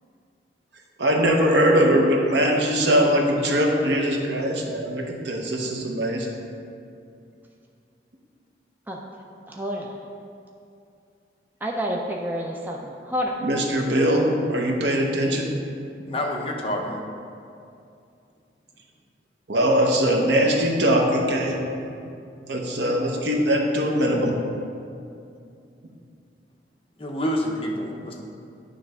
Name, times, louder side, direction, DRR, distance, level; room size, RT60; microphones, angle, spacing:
voice 1, 1.0-6.3 13.4-15.6 19.5-21.6 22.5-24.4, equal, 80° right, 1 dB, 0.9 m, -21 dB
voice 2, 9.5-9.9 11.6-13.3, equal, 10° right, -1 dB, 0.4 m, -29 dB
voice 3, 16.1-17.0 27.0-28.3, equal, 30° left, 0 dB, 0.7 m, -28 dB
9.5 x 3.4 x 5.3 m, 2.5 s
head